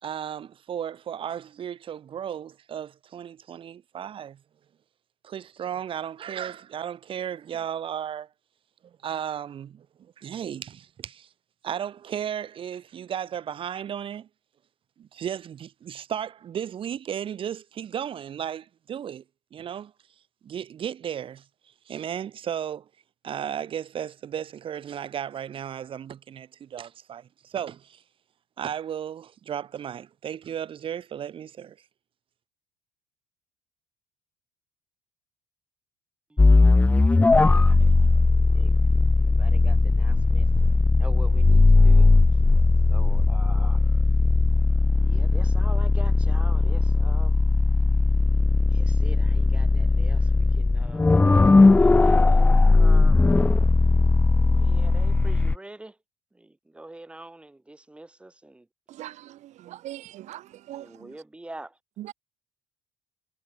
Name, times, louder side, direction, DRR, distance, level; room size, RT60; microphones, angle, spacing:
voice 1, 0.0-4.4 5.2-8.3 8.8-11.3 11.6-14.3 15.0-19.2 19.5-19.9 20.4-21.4 21.9-22.9 23.2-28.0 28.6-31.8, right 9 dB, 40° right, 1.9 m, -34 dB
sound 1, 36.4-55.6, left 3 dB, 10° left, 0.5 m, -18 dB
voice 2, 37.3-38.1 38.5-38.8 39.2-40.5 41.0-42.1 42.9-43.8 44.9-47.3 48.7-51.1 51.8-53.2 54.4-56.0 56.3-58.7 60.7-61.8, right 2 dB, 10° right, 3.8 m, -45 dB
voice 3, 59.0-60.4 60.7-60.9 62.0-62.1, right 14 dB, 55° right, 1.1 m, -40 dB
cardioid pair, 150°, 14 cm